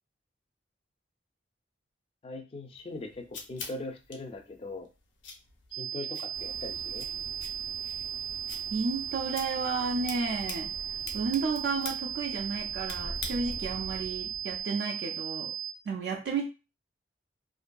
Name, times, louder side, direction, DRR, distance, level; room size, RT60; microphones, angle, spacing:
voice 1, 2.2-4.9 5.7-7.1, left 2 dB, 30° left, 6 dB, 0.4 m, -41 dB
sound 1, 2.8-13.8, left 5 dB, 85° left, 0.6 m, -47 dB
sound 2, 5.7-15.7, right 10 dB, 85° right, 0.7 m, -36 dB
sound 3, 6.3-14.6, equal, 15° right, 0.6 m, -47 dB
voice 2, 8.7-10.7 11.1-15.5 15.9-16.4, right 4 dB, 65° right, 0 dB, 0.4 m, -32 dB
2.5 x 2.5 x 2.2 m, 0.30 s
head